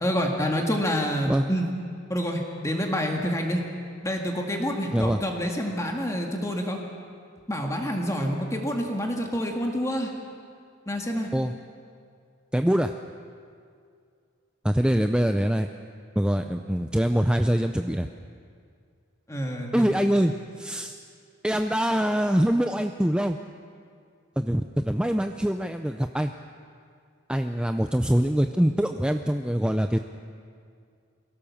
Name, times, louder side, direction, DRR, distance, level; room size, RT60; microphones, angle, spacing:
voice 1, 0.0-1.7 2.1-3.6 4.0-6.8 7.5-10.1 10.9-11.3 19.3-19.9, equal, 15° left, 1 dB, 1.9 m, -27 dB
voice 2, 12.5-12.9 14.6-15.7 16.2-18.1 19.7-21.0 21.4-23.4 24.4-26.3 27.3-30.0, equal, 5° right, 6 dB, 0.5 m, -24 dB
23.0 x 17.0 x 7.2 m, 2.3 s
head